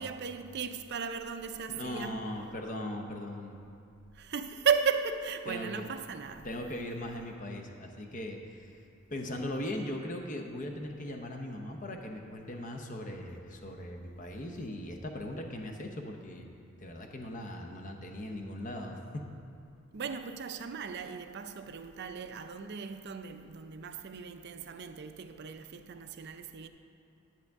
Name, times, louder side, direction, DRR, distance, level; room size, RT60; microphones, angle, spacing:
voice 1, 0.0-2.3 4.2-6.5 19.9-26.7, right 6 dB, 50° right, 0.4 m, -35 dB
voice 2, 1.7-3.6 5.5-5.9 6.4-8.7 9.1-16.5 16.8-19.0, left 1 dB, 35° left, 0.8 m, -39 dB
10.5 x 8.3 x 3.5 m
head